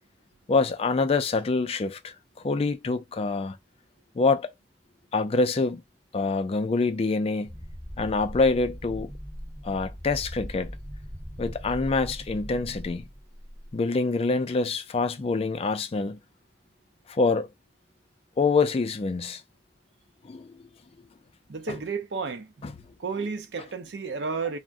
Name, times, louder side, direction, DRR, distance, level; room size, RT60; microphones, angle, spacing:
voice 1, 0.5-2.1 2.4-3.6 4.2-4.5 5.1-5.8 6.1-7.5 8.0-9.1 9.6-10.7 11.4-13.1 13.7-16.2 17.1-17.5 18.4-19.4 20.2-20.5 21.7-21.8 22.6-22.7, left 3 dB, 35° left, 0.4 m, -25 dB
sound 1, 7.4-13.7, equal, 20° right, 0.8 m, -40 dB
voice 2, 21.5-22.5 23.0-24.6, right 4 dB, 75° right, 0.6 m, -32 dB
2.5 x 2.1 x 3.4 m
head